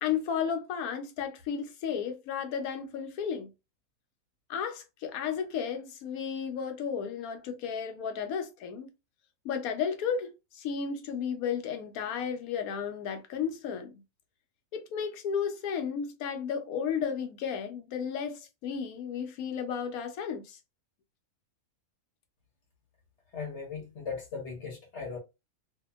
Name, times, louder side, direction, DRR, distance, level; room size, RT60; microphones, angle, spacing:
voice 1, 0.0-3.5 4.5-8.9 9.4-14.0 14.7-20.6, left 7 dB, 85° left, 1.1 m, -33 dB
voice 2, 23.3-25.2, left 5 dB, 55° left, 1.0 m, -38 dB
2.7 x 2.5 x 2.3 m
omnidirectional pair, 1.5 m